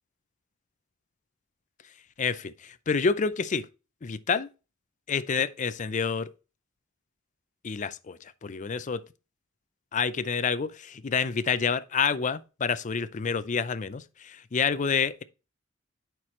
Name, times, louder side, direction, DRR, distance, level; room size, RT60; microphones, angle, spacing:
voice 1, 2.2-3.6 4.1-4.5 5.1-6.3 7.6-9.0 9.9-15.2, left 5 dB, 35° left, 0.5 m, -28 dB
9.8 x 4.6 x 3.1 m
head